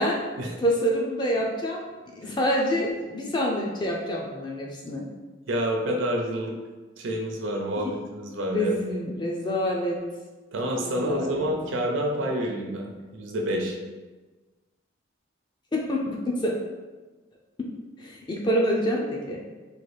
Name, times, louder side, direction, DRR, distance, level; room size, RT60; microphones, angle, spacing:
voice 1, 0.6-5.0 7.8-7.9 8.5-10.0 10.8-11.5 15.7-16.5 17.6-17.7 18.0-19.4, equal, 25° left, -1 dB, 0.3 m, -27 dB
voice 2, 5.5-6.5 7.0-8.8 10.5-13.8, equal, 80° right, 1 dB, 0.5 m, -28 dB
3.0 x 2.3 x 3.1 m, 1.3 s
head